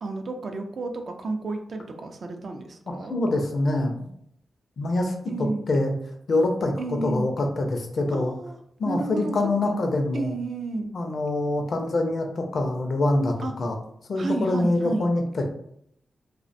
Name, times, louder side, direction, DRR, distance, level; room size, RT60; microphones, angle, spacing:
voice 1, 0.0-3.1 5.3-5.6 6.8-7.3 8.1-8.6 8.9-9.4 9.6-9.8 10.1-10.9 13.4-13.5 14.2-15.1, right 3 dB, 65° right, 4 dB, 0.4 m, -31 dB
voice 2, 2.9-4.1 4.8-5.9 6.3-8.3 8.8-10.3 10.9-13.8 14.1-15.4, left 2 dB, 65° left, 3 dB, 0.5 m, -25 dB
2.4 x 2.1 x 2.5 m, 0.71 s
cardioid pair, 50°, 0 cm